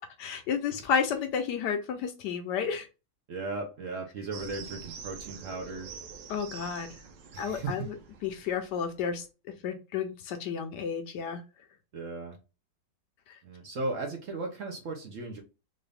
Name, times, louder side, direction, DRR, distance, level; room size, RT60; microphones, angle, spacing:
voice 1, 0.2-2.9 6.3-6.9 7.4-7.9 8.2-9.2 9.6-11.4, left 7 dB, 70° left, 1.1 m, -31 dB
voice 2, 3.3-5.9 7.3-7.8 11.9-12.4 13.4-15.4, right 3 dB, 55° right, 0.9 m, -36 dB
sound 1, 4.3-9.1, right 6 dB, 85° right, 1.3 m, -46 dB
3.8 x 2.6 x 3.3 m
omnidirectional pair, 2.0 m